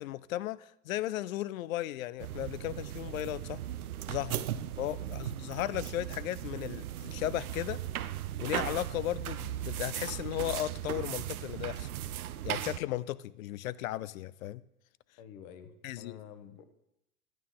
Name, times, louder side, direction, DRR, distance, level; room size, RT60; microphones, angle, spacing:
voice 1, 0.0-3.6 4.1-4.4 4.8-7.8 8.4-11.9 12.4-14.6 15.8-16.2, left 14 dB, 65° left, 0.6 m, -35 dB
sound 1, 2.2-12.8, right 12 dB, 70° right, 0.7 m, -37 dB
voice 2, 4.7-5.2 15.2-16.6, left 9 dB, 45° left, 1.2 m, -50 dB
12.5 x 9.1 x 3.8 m
hypercardioid pair, 95°, 45 cm